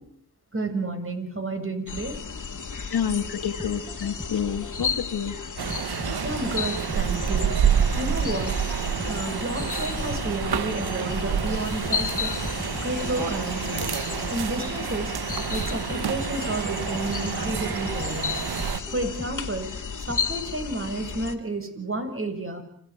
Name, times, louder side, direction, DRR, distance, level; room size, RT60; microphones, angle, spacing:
voice 1, 0.5-2.2 6.2-7.5 7.9-8.5 9.1-12.3 12.8-13.9 14.3-15.1 15.5-18.4 18.9-19.7 20.1-22.6, right 2 dB, 35° right, 6 dB, 6.8 m, -31 dB
sound 1, 1.9-21.4, left 5 dB, 50° left, 2.5 m, -33 dB
voice 2, 2.9-5.3, left 8 dB, 75° left, 9 dB, 1.9 m, -28 dB
sound 2, 3.6-5.2 5.7-10.0 10.5-14.8 15.3-19.6 20.1-20.2, left 1 dB, 10° left, 2.2 m, -39 dB
sound 3, 5.6-18.8, right 8 dB, 70° right, 1.2 m, -28 dB
27.0 x 15.5 x 9.6 m, 0.71 s
cardioid pair, 45°, 39 cm